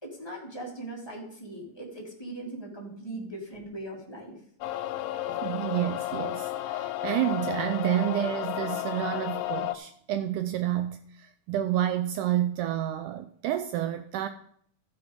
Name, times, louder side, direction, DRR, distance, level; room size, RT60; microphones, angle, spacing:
voice 1, 0.0-4.4, right 1 dB, 10° left, 2.2 m, -40 dB
sound 1, 4.6-9.8, left 14 dB, 85° left, 2.4 m, -32 dB
voice 2, 5.3-14.3, right 12 dB, 90° right, 1.7 m, -29 dB
14.5 x 5.9 x 5.2 m
omnidirectional pair, 4.1 m